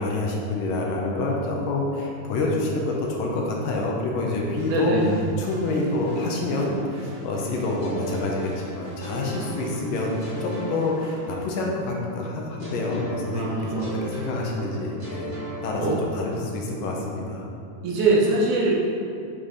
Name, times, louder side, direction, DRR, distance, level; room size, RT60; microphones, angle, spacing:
voice 1, 0.0-5.0 5.4-15.4 15.6-15.8 16.1-17.5, left 2 dB, 75° left, -1 dB, 2.4 m, -27 dB
sound 1, 4.5-11.4, right 2 dB, 85° right, 1.5 m, -42 dB
voice 2, 4.7-5.2 13.3-14.0 15.8-16.0 17.8-18.7, right 2 dB, 70° right, -5 dB, 2.2 m, -22 dB
sound 2, 7.8-11.7 12.6-16.5, equal, 40° right, 0.6 m, -36 dB
7.4 x 4.6 x 5.0 m, 2.5 s
omnidirectional pair, 4.1 m